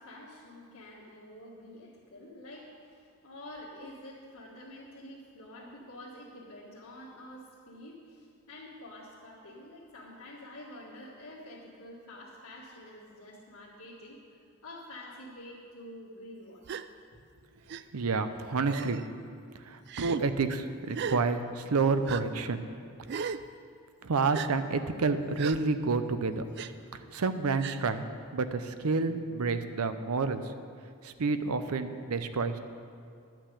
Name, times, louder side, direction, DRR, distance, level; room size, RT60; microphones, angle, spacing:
voice 1, 0.0-16.6 17.1-17.2, left 1 dB, 80° left, -7 dB, 1.7 m, -48 dB
Gasp, 16.7-16.9 17.7-17.8 18.7-19.1 19.9-20.2 20.9-21.2 22.1-22.2 23.1-23.4 24.3-24.5 25.4-25.6 26.6-26.7 27.6-27.8, right 7 dB, 50° right, 0.3 m, -36 dB
voice 2, 17.9-19.0 19.7-22.7 24.0-26.4 27.1-28.0 28.3-30.4 31.0-32.6, right 4 dB, 80° right, 10 dB, 0.6 m, -29 dB
11.5 x 6.0 x 8.4 m, 2.3 s
head